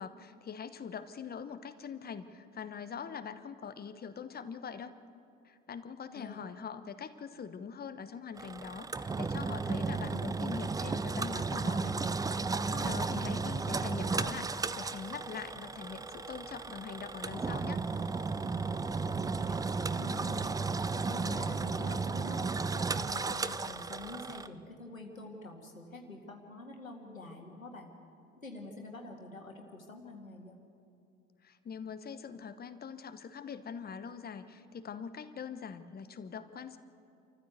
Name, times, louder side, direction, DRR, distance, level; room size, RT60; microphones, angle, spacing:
voice 1, 0.0-4.9 5.4-12.0 12.3-17.8 31.4-36.8, left 6 dB, 25° left, 11 dB, 1.1 m, -43 dB
Engine, 8.4-24.5, right 4 dB, 10° right, 0.5 m, -34 dB
voice 2, 19.1-20.7 21.1-27.9 28.4-30.6, left 2 dB, 85° left, 3 dB, 1.9 m, -47 dB
27.0 x 14.5 x 8.1 m, 2.6 s
figure-of-eight pair, 65°, 40 cm